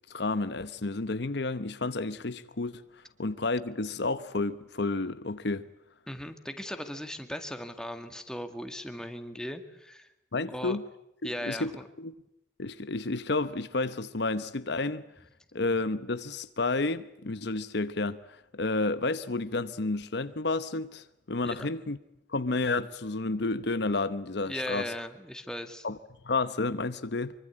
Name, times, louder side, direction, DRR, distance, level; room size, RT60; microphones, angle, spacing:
voice 1, 0.1-2.8 3.2-5.7 10.3-10.8 11.2-11.7 12.0-12.1 12.6-15.1 15.5-22.0 22.3-24.9 25.8-26.0 26.2-27.3, left 3 dB, 60° left, 0.9 m, -31 dB
voice 2, 6.1-10.1 10.5-10.8 11.2-11.8 21.4-21.7 24.4-25.9, equal, 5° left, 2.1 m, -38 dB
25.0 x 24.0 x 8.6 m
head